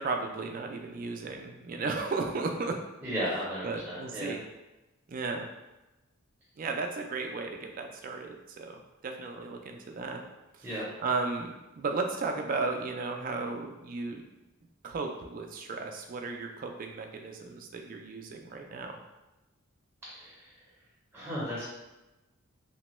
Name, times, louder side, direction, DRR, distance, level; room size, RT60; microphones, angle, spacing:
voice 1, 0.0-2.8 3.6-4.4 5.1-5.5 6.6-10.2 10.6-10.7 11.0-14.2 14.8-19.0, right 3 dB, 40° right, 3 dB, 0.3 m, -35 dB
voice 2, 3.0-4.3 10.6-10.9 20.0-20.5 21.1-21.7, equal, 10° right, -9 dB, 0.6 m, -35 dB
2.9 x 2.1 x 3.0 m, 1.0 s
head